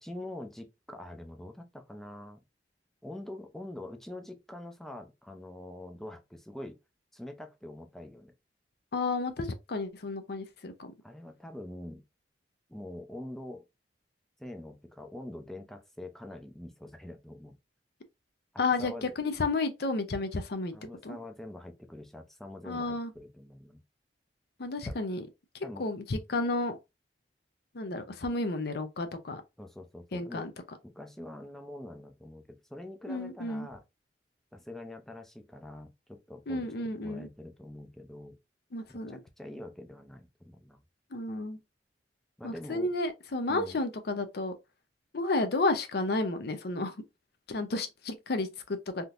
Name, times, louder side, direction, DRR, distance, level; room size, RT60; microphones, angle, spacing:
voice 1, 0.0-2.4 3.0-6.8 7.1-8.3 11.0-12.0 12.7-13.6 14.4-17.6 18.5-19.1 20.7-23.8 24.8-25.0 25.6-25.9 29.6-30.5 30.8-33.8 34.5-38.4 38.9-40.8 42.4-42.9 43.5-43.8, left 1 dB, ahead, 0.5 m, -44 dB
voice 2, 8.9-10.7 18.6-20.7 21.0-21.2 22.6-23.1 24.6-25.2 25.8-26.8 27.7-29.4 30.1-30.5 33.1-33.7 36.5-37.3 38.7-39.2 41.1-41.6 42.4-44.5 45.1-47.0 47.5-49.0, left 2 dB, 60° left, 0.6 m, -32 dB
3.5 x 2.8 x 2.5 m
head